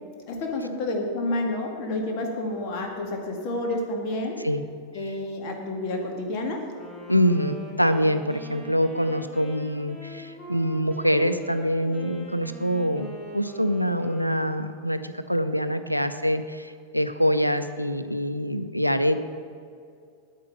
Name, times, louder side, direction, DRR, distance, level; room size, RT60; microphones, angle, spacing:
voice 1, 0.3-4.4 4.9-6.6, left 2 dB, 45° left, 2 dB, 1.9 m, -29 dB
Wind instrument woodwind instrument, 6.7-15.0, right 1 dB, 15° left, 2.6 m, -43 dB
voice 2, 7.1-19.3, equal, 90° right, 10 dB, 0.5 m, -25 dB
9.3 x 8.7 x 5.6 m, 2.3 s
figure-of-eight pair, 90°, 0 cm